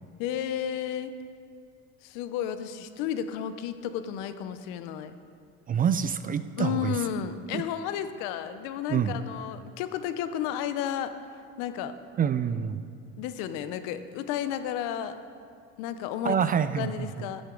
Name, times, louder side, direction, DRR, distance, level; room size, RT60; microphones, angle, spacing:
voice 1, 0.2-1.1 2.0-5.2 6.6-11.1 11.6-12.0 13.2-15.2 15.8-16.4 16.8-17.4, left 9 dB, 80° left, 11 dB, 0.7 m, -32 dB
voice 2, 5.7-6.9 7.5-7.6 8.9-9.2 12.2-12.8 16.2-17.3, right 8 dB, 30° right, 12 dB, 0.4 m, -27 dB
10.5 x 10.0 x 3.8 m, 2.3 s
supercardioid pair, 95°, 32 cm